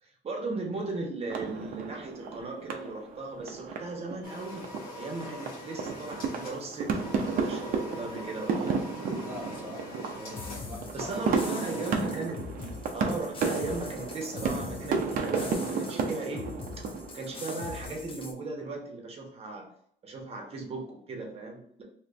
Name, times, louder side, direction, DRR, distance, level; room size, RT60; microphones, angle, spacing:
voice 1, 0.0-4.7 5.0-8.8 10.9-16.5 17.1-19.7 20.0-21.8, right 3 dB, 35° right, 1 dB, 1.0 m, -37 dB
sound 1, 1.3-17.8, right 4 dB, 55° right, 0.6 m, -33 dB
sound 2, 4.2-12.0, left 2 dB, 60° left, 1.2 m, -44 dB
voice 2, 9.2-12.2, equal, 10° right, -4 dB, 1.3 m, -44 dB
sound 3, 10.3-18.3, left 4 dB, 30° left, 0.6 m, -42 dB
2.9 x 2.5 x 3.3 m, 0.66 s
cardioid pair, 110°, 17 cm